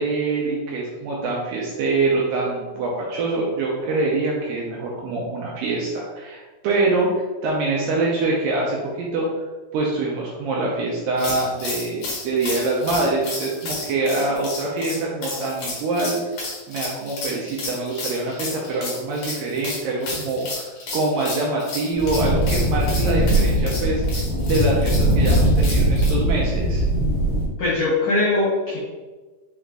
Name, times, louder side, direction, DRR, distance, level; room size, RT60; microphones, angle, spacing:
voice 1, 0.0-9.3 9.7-16.2 16.7-24.0 24.4-26.9, right 2 dB, 85° right, -3 dB, 2.1 m, -24 dB
sound 1, 11.2-26.1, left 3 dB, 65° left, 2.4 m, -32 dB
sound 2, 21.9-27.5, right 1 dB, 65° right, 1.2 m, -20 dB
voice 2, 27.6-28.8, left 2 dB, 85° left, -8 dB, 1.4 m, -21 dB
6.1 x 2.4 x 3.3 m, 1.3 s
omnidirectional pair, 4.6 m